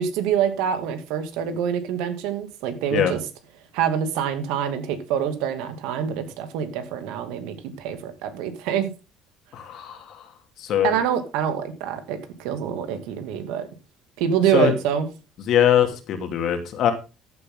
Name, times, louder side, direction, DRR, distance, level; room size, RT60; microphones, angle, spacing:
voice 1, 0.0-3.2 3.7-8.9 10.8-13.7 14.2-15.1, right 8 dB, 80° right, 9 dB, 2.4 m, -25 dB
voice 2, 9.5-10.2 10.6-10.9 14.5-14.7 15.5-16.9, left 10 dB, 50° left, 7 dB, 2.5 m, -21 dB
14.5 x 8.2 x 3.8 m, 0.30 s
cardioid pair, 145°, 0 cm